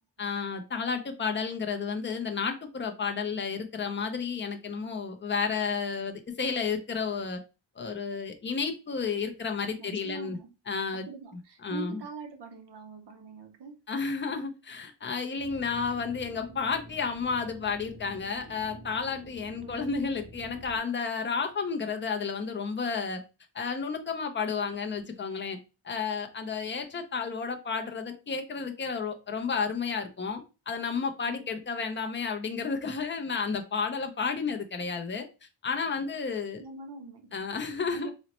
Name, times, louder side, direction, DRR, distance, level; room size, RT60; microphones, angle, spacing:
voice 1, 0.2-7.4 7.8-10.4 10.7-11.0 11.3-12.0 13.9-23.2 23.5-25.6 25.8-35.3 35.6-36.6 37.3-38.1, left 5 dB, 25° left, 0.4 m, -32 dB
voice 2, 9.8-10.5 11.0-13.8 19.6-19.9 31.2-31.5 36.6-37.3 37.8-38.1, right 4 dB, 60° right, 0.8 m, -43 dB
sound 1, 15.3-20.8, right 1 dB, 75° right, 2.0 m, -48 dB
3.9 x 2.1 x 2.9 m
wide cardioid pair, 170°, 47 cm